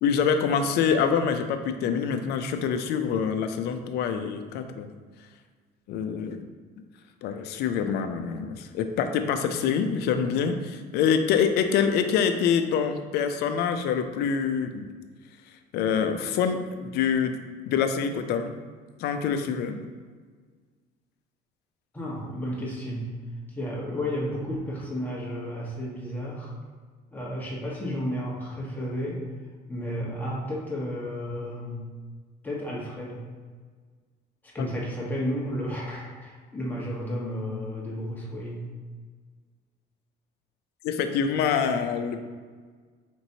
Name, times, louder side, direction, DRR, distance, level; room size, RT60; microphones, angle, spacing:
voice 1, 0.0-4.9 5.9-6.5 7.2-14.9 15.7-17.4 17.7-18.5 19.0-19.8 34.6-34.7 40.8-42.2, left 7 dB, 70° left, 7 dB, 0.5 m, -25 dB
voice 2, 21.9-23.0 23.5-26.5 27.1-29.2 29.7-31.8 32.4-33.2 34.5-38.6, equal, 10° left, -5 dB, 1.1 m, -32 dB
5.1 x 3.0 x 2.7 m, 1.5 s
cardioid pair, 125°, 18 cm